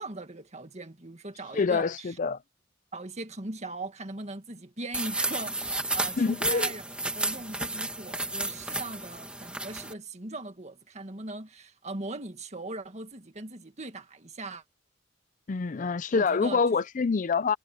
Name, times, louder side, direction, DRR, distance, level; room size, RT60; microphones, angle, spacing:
voice 1, 0.0-2.2 2.9-14.6 16.1-16.6, right 2 dB, 35° right, 1.9 m, -40 dB
voice 2, 1.5-2.4 6.2-6.7 15.5-17.6, left 4 dB, 40° left, 0.4 m, -26 dB
sound 1, 4.9-9.9, right 2 dB, 5° right, 1.7 m, -32 dB
head